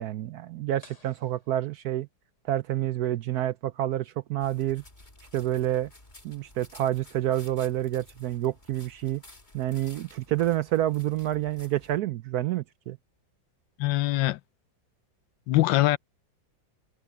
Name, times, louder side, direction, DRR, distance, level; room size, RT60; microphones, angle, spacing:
voice 1, 0.0-2.1 2.5-4.8 5.3-5.9 6.2-9.2 9.5-13.0, right 13 dB, 70° right, 0.9 m, -28 dB
sound 1, 0.8-2.5, left 3 dB, 40° left, 3.3 m, -58 dB
sound 2, 4.4-12.0, left 2 dB, 25° left, 3.1 m, -53 dB
voice 2, 13.8-14.4 15.5-16.0, left 17 dB, 85° left, 1.3 m, -23 dB
omnidirectional pair, 2.0 m